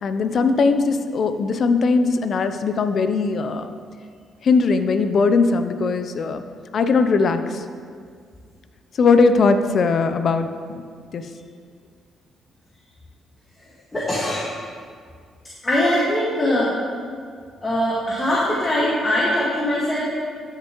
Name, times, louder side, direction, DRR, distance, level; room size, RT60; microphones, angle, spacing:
voice 1, 0.0-3.7 4.4-6.4 6.7-7.6 9.0-10.8 11.1-11.2, left 4 dB, 55° left, 9 dB, 0.6 m, -19 dB
voice 2, 13.9-14.5 15.6-16.7 17.6-20.0, left 1 dB, 25° left, -7 dB, 1.8 m, -21 dB
13.5 x 6.6 x 3.1 m, 2.1 s
cardioid pair, 90°, 0 cm